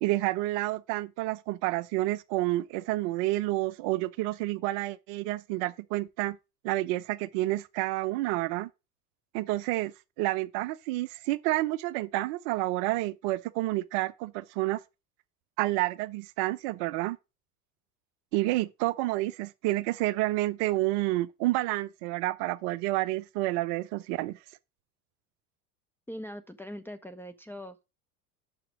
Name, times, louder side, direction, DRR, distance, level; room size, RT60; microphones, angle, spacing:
voice 1, 0.0-6.4 6.6-8.7 9.3-9.9 10.2-14.8 15.6-17.2 18.3-24.4, right 18 dB, 45° right, 0.7 m, -29 dB
voice 2, 26.1-27.9, equal, 5° left, 0.5 m, -42 dB
5.9 x 4.9 x 6.1 m
figure-of-eight pair, 80°, 49 cm